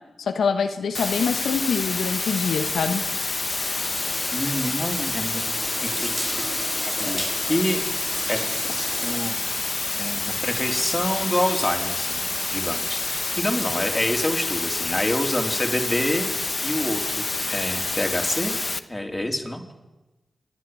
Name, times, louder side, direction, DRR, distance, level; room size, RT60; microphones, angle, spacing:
voice 1, 0.2-3.0, left 5 dB, 85° left, 7 dB, 1.1 m, -25 dB
sound 1, 0.9-18.8, left 3 dB, 45° left, 1.1 m, -28 dB
sound 2, 3.5-9.3, right 1 dB, 30° right, 4.0 m, -34 dB
voice 2, 4.3-5.5 5.8-6.2 7.0-7.9 8.3-8.4 9.0-9.4 10.0-18.6 18.9-19.6, left 1 dB, 20° left, 3 dB, 3.7 m, -27 dB
28.5 x 10.5 x 9.5 m, 1.1 s
cardioid pair, 45°, 0 cm